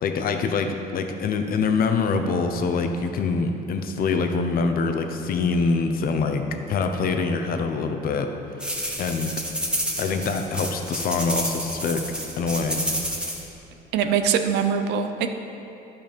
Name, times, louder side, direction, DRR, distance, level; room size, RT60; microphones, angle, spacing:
voice 1, 0.0-8.3 8.5-8.6 9.0-9.3 10.0-12.0 12.4-12.9, left 4 dB, 60° left, 6 dB, 0.9 m, -25 dB
sound 1, 8.6-13.4, equal, 5° right, 1.4 m, -30 dB
voice 2, 13.9-15.3, right 7 dB, 85° right, 7 dB, 0.7 m, -22 dB
11.5 x 5.5 x 5.3 m, 2.9 s
cardioid pair, 110°, 17 cm